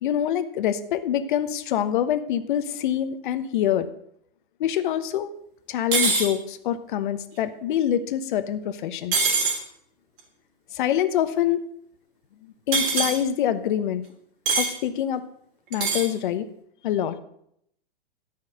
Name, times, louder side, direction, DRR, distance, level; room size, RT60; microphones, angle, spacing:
voice 1, 0.0-3.9 4.6-5.3 5.7-9.3 10.7-11.6 12.4-14.0 14.6-15.2 15.7-16.5 16.8-17.2, left 10 dB, 55° left, 12 dB, 1.1 m, -25 dB
sound 1, 5.9-6.3 9.1-9.6 12.7-13.2 14.5-14.7 15.7-16.1, right 4 dB, 60° right, 3.5 m, -23 dB
13.5 x 5.7 x 7.9 m, 0.73 s
hypercardioid pair, 140°, 30 cm